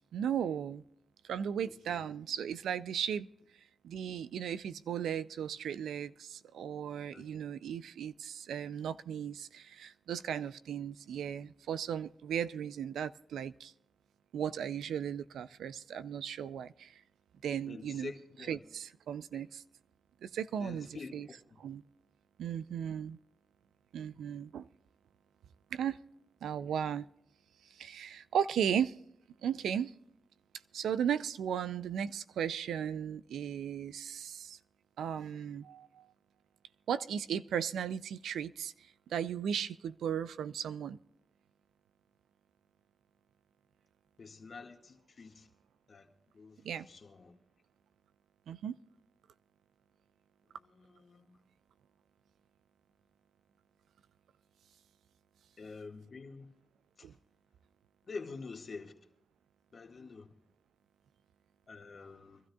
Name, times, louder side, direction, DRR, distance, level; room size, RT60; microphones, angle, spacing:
voice 1, 0.1-0.8 1.2-3.3 3.8-13.7 14.3-17.0 17.4-18.1 18.4-19.6 20.2-21.3 21.6-21.8 22.4-23.2 23.9-24.7 25.7-26.0 26.4-27.1 27.7-29.0 29.4-29.9 30.7-34.6 35.0-36.1 36.9-41.0 46.6-46.9 48.5-48.8 57.0-57.1, right 8 dB, 90° right, 15 dB, 0.4 m, -36 dB
voice 2, 17.7-18.6 20.6-21.4 44.2-45.5 45.9-46.1 46.3-47.3 50.6-51.3 55.6-56.5 57.0-57.1 58.1-58.9 59.7-60.3 61.7-62.4, left 4 dB, 60° left, 3 dB, 1.8 m, -47 dB
25.0 x 13.0 x 2.3 m, 0.75 s
cardioid pair, 50°, 0 cm